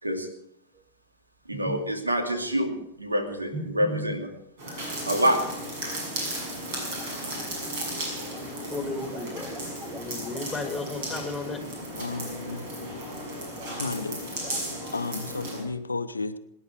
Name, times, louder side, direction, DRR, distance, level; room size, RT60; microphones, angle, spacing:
sound 1, 0.7-0.8 1.5-2.0 3.5-4.3 6.6-6.7 6.9-14.1 14.4-14.8, right 1 dB, 10° right, 1.6 m, -42 dB
voice 1, 1.5-4.3 5.1-5.4, equal, 80° right, 2.5 m, -26 dB
sound 2, 4.6-15.6, right 1 dB, 50° right, 6.4 m, -35 dB
voice 2, 8.7-9.5 9.9-11.6, left 3 dB, 10° left, 2.5 m, -34 dB
voice 3, 11.9-12.7 13.7-14.7 14.9-16.4, left 3 dB, 80° left, 0.8 m, -33 dB
24.5 x 10.5 x 4.8 m
figure-of-eight pair, 90°, 0 cm